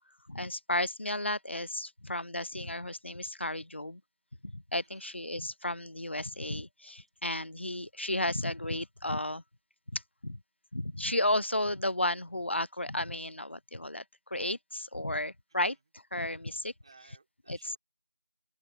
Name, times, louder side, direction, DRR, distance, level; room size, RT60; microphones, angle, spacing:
voice 1, 0.3-4.0 4.4-9.4 9.9-10.4 10.7-16.7 17.5-17.8, left 1 dB, 45° left, 0.4 m, -33 dB
voice 2, 4.8-5.2 15.5-15.8 16.8-17.8, right 3 dB, 20° right, 4.8 m, -61 dB
open air
figure-of-eight pair, 175°, 9 cm